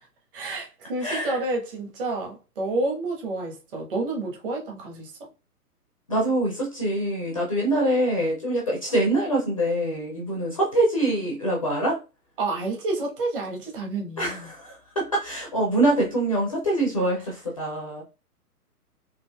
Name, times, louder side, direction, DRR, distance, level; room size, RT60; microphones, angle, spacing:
voice 1, 0.3-5.1 12.4-14.5, right 2 dB, 35° right, 1.1 m, -29 dB
voice 2, 1.0-1.4 6.1-12.0 14.2-18.0, right 1 dB, 25° left, 0.4 m, -24 dB
3.9 x 2.6 x 2.2 m
figure-of-eight pair, 125°, 47 cm